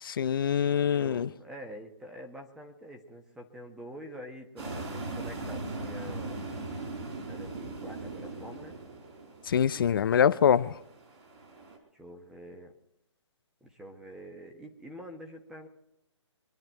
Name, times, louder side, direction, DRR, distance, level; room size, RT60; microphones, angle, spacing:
voice 1, 0.0-1.3 9.5-10.7, left 8 dB, 45° left, 0.5 m, -24 dB
voice 2, 0.9-6.4 7.3-8.7 11.9-12.7 13.6-15.7, equal, 5° right, 1.1 m, -46 dB
sound 1, 4.6-11.8, right 2 dB, 55° right, 4.6 m, -39 dB
26.0 x 10.5 x 4.5 m
hypercardioid pair, 160°, 16 cm